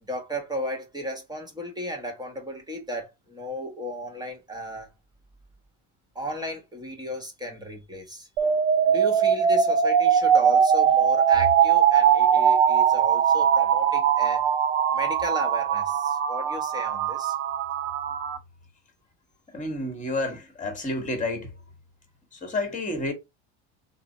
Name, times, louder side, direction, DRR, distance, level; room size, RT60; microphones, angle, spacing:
voice 1, 0.0-4.9 6.1-8.3 8.8-14.5 14.9-17.4, equal, 10° right, 1.2 m, -34 dB
sound 1, 8.4-18.4, right 8 dB, 90° right, 0.6 m, -21 dB
voice 2, 19.5-21.5 22.4-23.1, left 2 dB, 20° left, 1.4 m, -30 dB
3.2 x 2.1 x 3.8 m
supercardioid pair, 80°, 35 cm